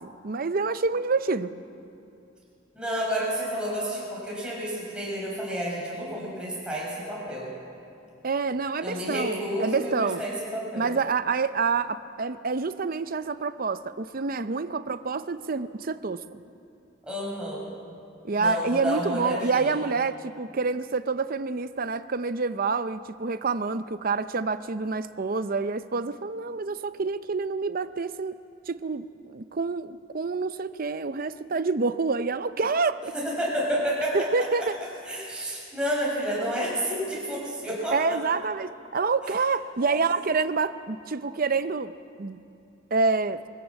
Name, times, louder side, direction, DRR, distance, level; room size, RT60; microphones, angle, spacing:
voice 1, 0.0-1.5 8.2-10.2 10.8-16.4 18.2-28.4 28.7-33.1 34.1-34.7 37.9-41.9 42.2-42.4 42.9-43.4, right 4 dB, 50° right, 12 dB, 0.7 m, -27 dB
voice 2, 2.7-7.5 8.8-10.9 17.0-17.7 18.4-19.8 33.1-34.2 34.6-34.7 35.1-38.2 39.8-40.1, equal, 5° right, -6 dB, 6.7 m, -30 dB
23.0 x 16.0 x 7.4 m, 2.7 s
head